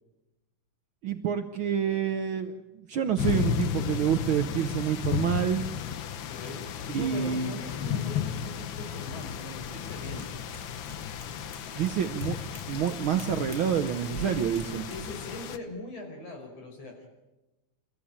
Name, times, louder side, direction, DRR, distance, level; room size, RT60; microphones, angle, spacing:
voice 1, 1.0-5.7 6.9-7.6 11.8-12.4 12.7-14.9, right 9 dB, 80° right, 9 dB, 1.1 m, -28 dB
sound 1, 3.2-15.6, left 8 dB, 85° left, 1.0 m, -34 dB
voice 2, 6.3-10.3 14.1-14.4 14.8-17.1, left 1 dB, 55° left, 2 dB, 6.2 m, -41 dB
Cat, 9.2-15.1, right 1 dB, 15° left, 2.7 m, -46 dB
28.5 x 14.5 x 8.8 m, 1.0 s
omnidirectional pair, 3.5 m